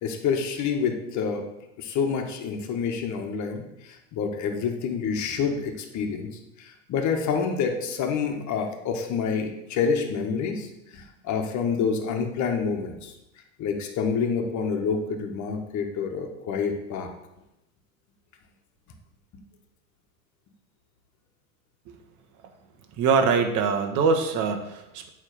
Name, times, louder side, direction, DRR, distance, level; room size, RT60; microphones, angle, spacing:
voice 1, 0.0-1.5 1.8-6.3 6.6-10.7 10.9-13.1 13.6-17.1, left 6 dB, 40° left, 4 dB, 1.6 m, -28 dB
voice 2, 23.0-25.1, right 5 dB, 45° right, 5 dB, 1.4 m, -23 dB
8.8 x 3.7 x 6.9 m, 0.90 s
hypercardioid pair, 90°, 43 cm